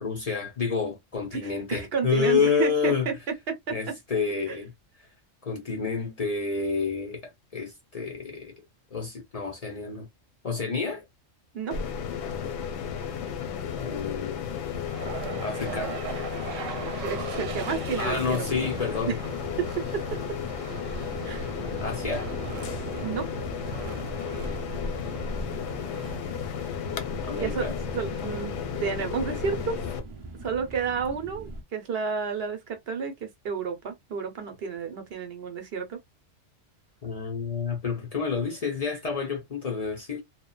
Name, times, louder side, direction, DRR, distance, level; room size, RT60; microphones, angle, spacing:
voice 1, 0.0-3.1 3.7-4.7 5.0-5.1 5.4-8.6 8.9-10.1 10.4-11.0 13.8-14.5 15.4-15.9 18.0-19.2 21.8-22.3 27.2-27.7 37.0-40.2, left 5 dB, 50° left, 0.4 m, -29 dB
voice 2, 1.3-3.1 3.5-3.7 4.5-4.6 11.5-11.8 16.8-18.4 19.0-19.2 19.6-20.4 21.2-21.5 23.0-23.3 27.3-27.7 27.9-29.8 30.4-36.0, right 6 dB, 55° right, 0.9 m, -31 dB
sound 1, 11.7-30.0, left 7 dB, 70° left, 0.8 m, -34 dB
sound 2, 14.8-29.0, right 8 dB, 85° right, 0.9 m, -40 dB
sound 3, 20.9-31.6, right 1 dB, 35° right, 0.5 m, -41 dB
2.7 x 2.1 x 2.3 m
omnidirectional pair, 1.3 m